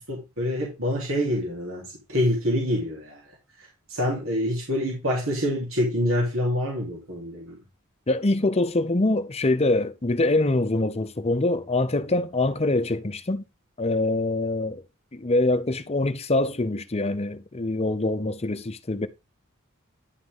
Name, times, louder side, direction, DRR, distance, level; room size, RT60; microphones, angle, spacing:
voice 1, 0.1-3.2 3.9-7.6, equal, 75° right, 3.4 m, -26 dB
voice 2, 8.1-13.4 13.8-14.8 15.1-19.1, left 2 dB, 30° left, 0.7 m, -24 dB
10.5 x 6.0 x 3.6 m
head